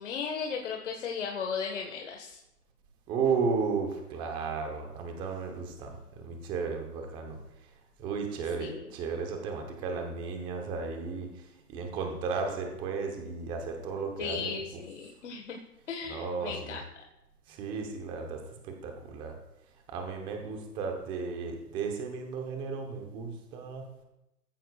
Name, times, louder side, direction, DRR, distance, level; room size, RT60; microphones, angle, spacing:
voice 1, 0.0-2.4 8.6-8.9 14.2-15.6 15.9-16.8, left 6 dB, 45° left, 1 dB, 1.6 m, -36 dB
voice 2, 3.1-7.4 8.0-14.8 16.1-16.8 17.5-19.4 19.9-23.8, right 5 dB, 10° right, 4 dB, 1.0 m, -34 dB
17.0 x 14.5 x 2.4 m, 0.90 s
hypercardioid pair, 150°, 48 cm